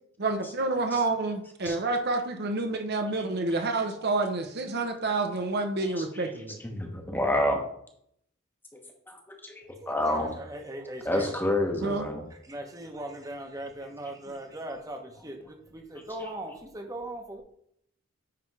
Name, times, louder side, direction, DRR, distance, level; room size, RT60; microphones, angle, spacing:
voice 1, 0.2-6.6 11.8-12.0, right 3 dB, 55° right, 5 dB, 0.8 m, -28 dB
voice 2, 6.6-7.6 9.5-10.3 11.0-12.2, left 1 dB, 10° left, 2 dB, 1.0 m, -28 dB
voice 3, 9.8-11.3 12.4-17.4, right 1 dB, 15° right, 4 dB, 1.0 m, -39 dB
9.6 x 3.5 x 4.8 m, 0.70 s
head